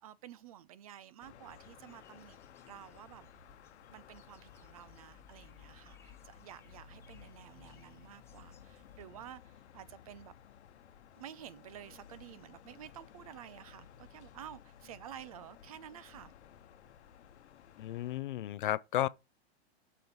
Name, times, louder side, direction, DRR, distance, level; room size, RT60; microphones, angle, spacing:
voice 1, 0.0-2.4 2.7-3.3 3.9-10.3 11.1-16.3, right 10 dB, 35° right, 0.4 m, -51 dB
sound 1, 1.2-18.2, left 9 dB, 85° left, 1.0 m, -57 dB
sound 2, 1.4-9.1, left 6 dB, 10° left, 1.0 m, -62 dB
voice 2, 17.8-19.1, left 13 dB, 50° left, 0.4 m, -33 dB
6.9 x 4.6 x 5.5 m
supercardioid pair, 170°, 33 cm